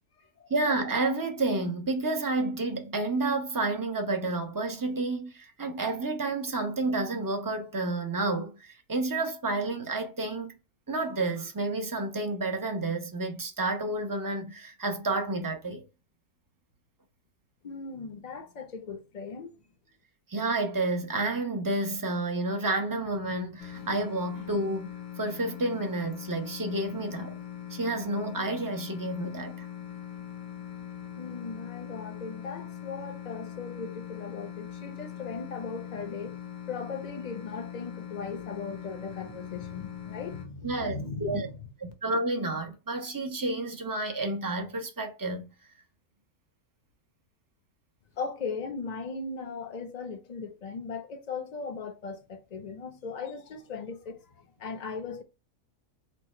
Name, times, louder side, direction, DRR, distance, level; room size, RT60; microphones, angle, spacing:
voice 1, 0.5-10.6 10.9-15.8 20.3-27.4 27.7-29.7 40.6-41.5 41.8-45.5, right 2 dB, 20° right, 0.6 m, -30 dB
voice 2, 17.6-19.5 31.2-36.4 36.7-41.6 48.2-55.2, left 4 dB, 40° left, 0.7 m, -38 dB
sound 1, 23.6-40.5, left 9 dB, 85° left, 1.8 m, -41 dB
4.3 x 2.3 x 4.3 m
omnidirectional pair, 1.5 m